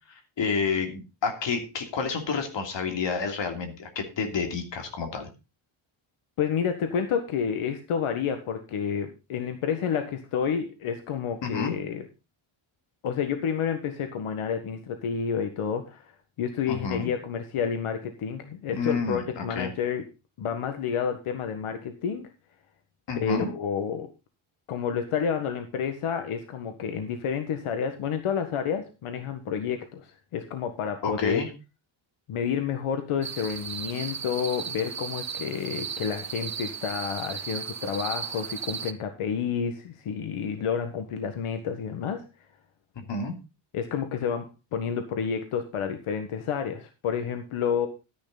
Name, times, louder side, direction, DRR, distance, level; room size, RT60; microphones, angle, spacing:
voice 1, 0.1-5.3 11.4-11.8 16.7-17.1 18.7-19.7 23.1-23.5 31.0-31.5 43.0-43.4, left 4 dB, 60° left, 6 dB, 2.9 m, -30 dB
voice 2, 6.4-12.0 13.0-16.1 16.4-20.0 20.4-22.3 23.1-24.1 24.7-31.4 32.3-42.2 43.7-47.9, left 7 dB, 90° left, 7 dB, 1.6 m, -30 dB
sound 1, 33.2-38.9, right 7 dB, 35° right, 1.0 m, -35 dB
13.0 x 10.5 x 4.0 m, 0.29 s
cardioid pair, 130°, 49 cm